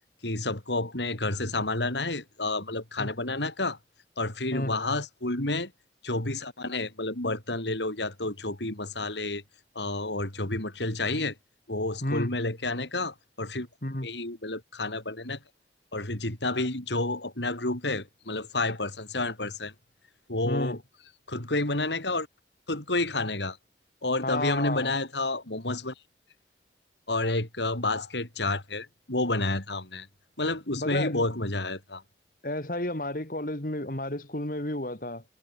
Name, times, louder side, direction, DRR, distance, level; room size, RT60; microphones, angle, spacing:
voice 1, 0.2-3.8 4.2-5.7 6.0-9.4 9.7-11.3 11.7-13.7 14.0-15.4 15.9-19.7 20.3-20.8 21.3-22.3 22.7-23.6 24.0-25.9 27.1-30.1 30.4-32.0, left 2 dB, 85° left, 4.9 m, -30 dB
voice 2, 12.0-12.4 13.8-14.1 20.4-20.8 24.2-24.9 30.7-31.2 32.4-35.2, left 1 dB, 50° left, 2.6 m, -31 dB
head